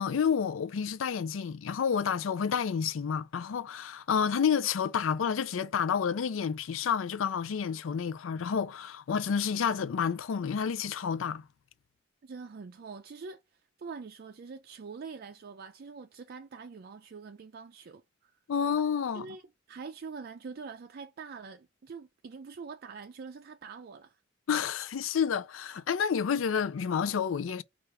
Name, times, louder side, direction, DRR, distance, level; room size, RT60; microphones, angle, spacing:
voice 1, 0.0-11.4 18.5-19.3 24.5-27.6, left 7 dB, 80° left, 0.4 m, -29 dB
voice 2, 12.2-18.3 19.1-19.4 19.7-24.2, right 5 dB, 50° right, 0.4 m, -44 dB
4.4 x 2.5 x 4.7 m
head